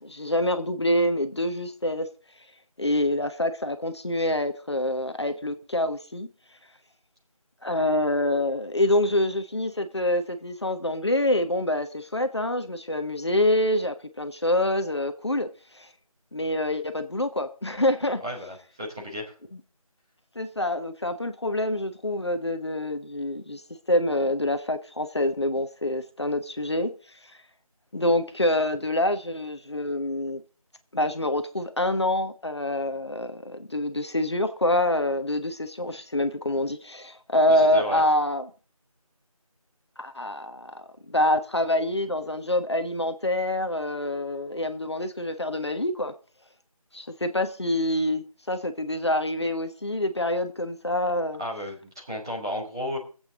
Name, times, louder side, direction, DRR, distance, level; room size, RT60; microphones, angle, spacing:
voice 1, 0.0-2.1 2.8-6.3 7.6-15.5 15.7-15.9 16.3-18.2 20.3-23.6 23.9-26.9 27.9-30.4 30.9-38.4 40.0-46.1 46.9-51.4, left 1 dB, 45° left, 1.2 m, -26 dB
voice 2, 18.2-19.3 37.5-38.0 51.4-53.0, equal, 5° right, 1.4 m, -33 dB
24.0 x 8.3 x 3.8 m
figure-of-eight pair, 170°, 19 cm